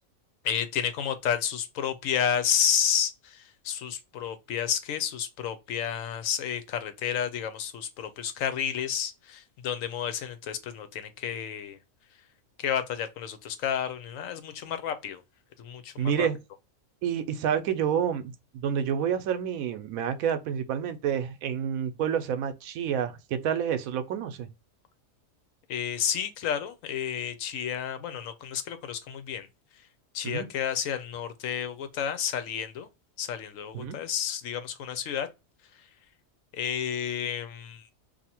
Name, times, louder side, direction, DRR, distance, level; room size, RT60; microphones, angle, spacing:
voice 1, 0.4-11.8 12.6-15.2 15.6-16.3 25.7-29.5 30.1-32.9 33.2-35.3 35.8-35.9 36.5-37.9, left 8 dB, 75° left, 1.0 m, -31 dB
voice 2, 16.0-16.4 17.0-24.5 30.2-30.5 33.7-34.0, right 8 dB, 80° right, 1.0 m, -29 dB
2.8 x 2.5 x 4.2 m
omnidirectional pair, 1.4 m